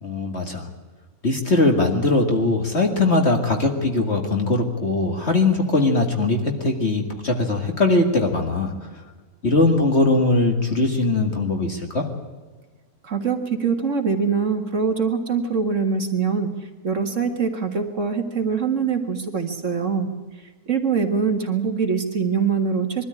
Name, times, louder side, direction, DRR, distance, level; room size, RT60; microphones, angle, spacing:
voice 1, 0.0-0.7 1.2-8.9 9.4-12.1, left 2 dB, 45° left, 4 dB, 2.2 m, -20 dB
voice 2, 13.0-20.1 20.7-23.0, right 5 dB, 55° right, 5 dB, 2.1 m, -23 dB
22.5 x 13.0 x 9.7 m, 1.3 s
omnidirectional pair, 1.6 m